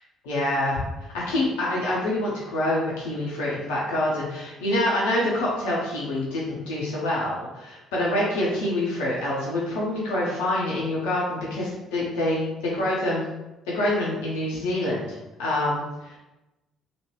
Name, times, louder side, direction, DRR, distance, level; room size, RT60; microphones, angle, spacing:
voice 1, 0.2-0.8 1.1-13.3 13.7-16.2, left 1 dB, 75° left, -6 dB, 0.7 m, -26 dB
3.0 x 2.5 x 3.0 m, 1.0 s
figure-of-eight pair, 50°, 0 cm